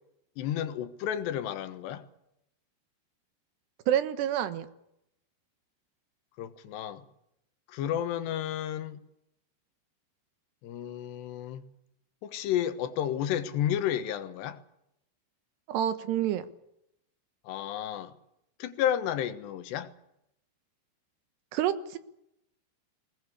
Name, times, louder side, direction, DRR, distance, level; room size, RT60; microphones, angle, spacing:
voice 1, 0.4-2.1 6.4-7.1 7.7-9.0 10.6-11.6 12.2-14.6 17.5-18.1 18.6-19.9, left 10 dB, 85° left, 3.5 m, -31 dB
voice 2, 3.9-4.7 15.7-16.5 21.5-22.0, right 11 dB, 85° right, 3.5 m, -28 dB
20.5 x 20.0 x 8.4 m
omnidirectional pair, 4.8 m